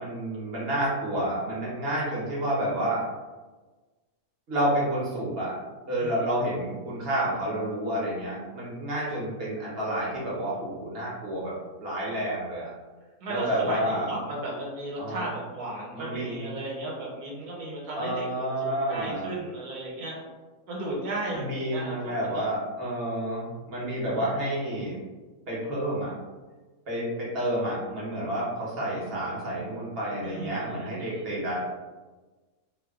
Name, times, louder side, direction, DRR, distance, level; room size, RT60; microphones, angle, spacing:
voice 1, 0.0-3.1 4.5-5.6 5.9-12.7 13.3-14.1 15.0-15.3 15.9-16.5 17.9-19.3 21.3-25.0 25.5-26.1 26.9-31.6, right 1 dB, 45° right, -6 dB, 0.9 m, -29 dB
voice 2, 13.2-20.2 20.7-22.0 22.2-22.4 30.2-31.2, right 1 dB, 70° right, -4 dB, 1.3 m, -35 dB
2.9 x 2.2 x 2.3 m, 1.2 s
omnidirectional pair, 1.7 m